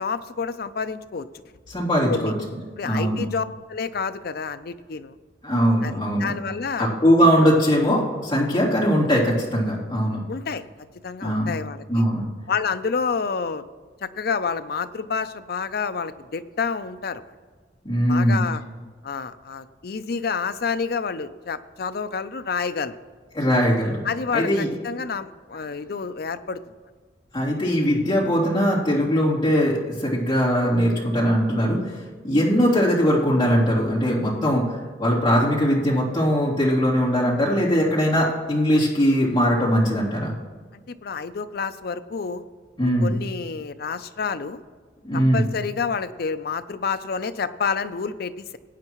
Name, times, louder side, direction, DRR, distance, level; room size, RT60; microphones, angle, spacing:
voice 1, 0.0-1.4 2.1-2.3 2.8-5.2 5.8-6.9 10.3-10.6 11.0-12.0 12.5-13.6 14.0-17.3 18.1-18.6 19.0-22.9 24.0-26.6 40.7-42.4 42.8-44.6 45.1-48.6, left 5 dB, 60° left, 11 dB, 0.5 m, -29 dB
voice 2, 1.7-2.3 2.8-3.2 5.4-6.3 6.8-10.2 11.2-11.5 11.9-12.3 17.8-18.4 23.3-24.0 24.3-24.7 27.3-34.7 35.0-40.3 42.8-43.1 45.0-45.4, equal, 25° left, -7 dB, 3.1 m, -20 dB
20.0 x 8.8 x 3.1 m, 1.5 s
head